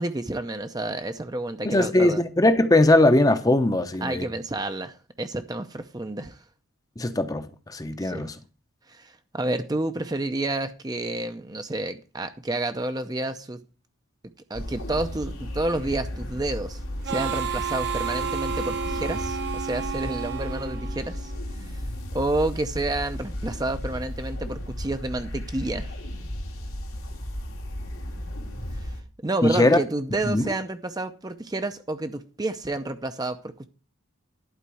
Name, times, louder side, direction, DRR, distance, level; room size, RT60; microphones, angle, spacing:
voice 1, 0.0-2.2 4.0-6.4 8.0-8.3 8.9-13.6 14.5-16.8 17.0-21.3 21.6-21.8 22.1-25.9 28.7-28.9 29.2-33.7, right 2 dB, 20° right, 0.6 m, -30 dB
voice 2, 1.6-4.3 7.0-8.3 29.4-29.8 30.3-30.4, left 1 dB, 15° left, 0.7 m, -20 dB
sound 1, 14.5-29.0, left 1 dB, 85° left, 2.3 m, -34 dB
Harmonica, 17.0-21.5, right 6 dB, 50° right, 0.9 m, -31 dB
11.5 x 4.5 x 7.6 m
head